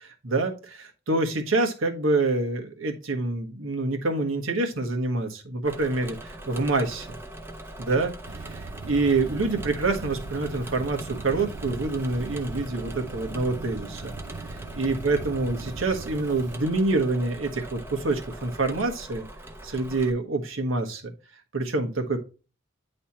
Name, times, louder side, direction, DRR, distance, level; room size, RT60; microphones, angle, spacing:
voice 1, 0.2-7.2 7.8-8.1 8.4-14.1 14.7-19.2 19.6-21.1 21.5-22.2, right 3 dB, 75° right, 4 dB, 1.4 m, -26 dB
Engine / Mechanisms, 5.6-20.1, right 1 dB, 10° right, 0.8 m, -41 dB
sound 1, 8.2-16.6, right 3 dB, 60° right, 0.5 m, -40 dB
10.0 x 3.3 x 4.2 m, 0.33 s
head